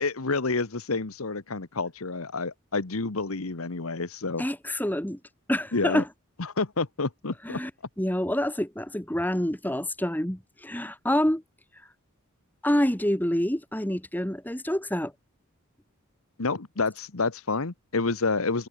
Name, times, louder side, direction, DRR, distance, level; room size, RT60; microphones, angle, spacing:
voice 1, 0.0-4.4 5.7-6.0 6.4-7.6 16.4-18.7, left 3 dB, 75° left, 1.2 m, -29 dB
voice 2, 4.4-5.2 5.5-6.1 7.4-7.7 8.0-11.4 12.6-15.1, equal, 10° left, 1.8 m, -27 dB
head